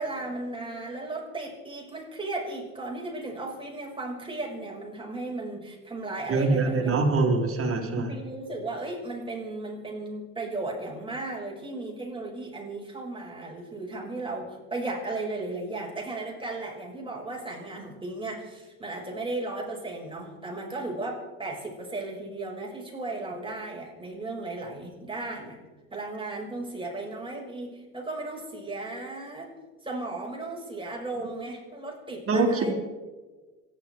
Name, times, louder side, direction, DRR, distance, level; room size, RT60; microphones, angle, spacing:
voice 1, 0.0-6.9 7.8-25.6 25.9-29.5 29.8-32.7, right 2 dB, 10° right, -1 dB, 6.0 m, -35 dB
voice 2, 6.3-8.1 32.3-32.7, right 3 dB, 30° right, 0 dB, 4.1 m, -24 dB
26.5 x 11.0 x 4.7 m, 1.3 s
hypercardioid pair, 70°, 42 cm